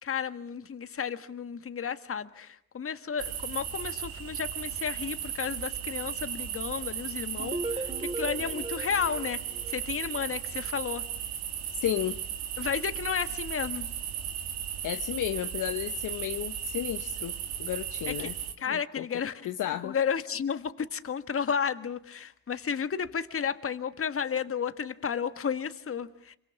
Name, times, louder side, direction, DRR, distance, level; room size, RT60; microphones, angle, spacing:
voice 1, 0.0-7.9 8.2-9.4 9.7-11.0 12.6-13.9 18.1-18.3 18.6-19.4 19.8-26.4, left 7 dB, 35° left, 1.7 m, -32 dB
sound 1, 3.2-18.5, right 9 dB, 75° right, 3.2 m, -36 dB
sound 2, 7.4-10.3, right 2 dB, 15° right, 2.1 m, -37 dB
voice 2, 11.7-12.2 14.8-18.3 18.7-19.1 19.4-20.0, left 12 dB, 55° left, 1.0 m, -33 dB
27.5 x 25.0 x 7.3 m
hypercardioid pair, 55°, 36 cm